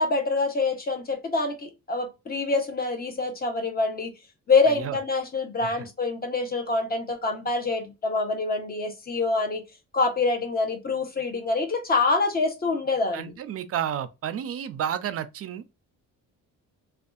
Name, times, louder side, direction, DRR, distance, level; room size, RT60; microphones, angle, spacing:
voice 1, 0.0-4.1 4.5-9.6 9.9-13.3, left 3 dB, 30° left, 0.8 m, -26 dB
voice 2, 4.7-5.0 5.6-5.7 13.1-15.8, right 9 dB, 45° right, 0.4 m, -31 dB
2.5 x 2.3 x 2.3 m
cardioid pair, 135°, 33 cm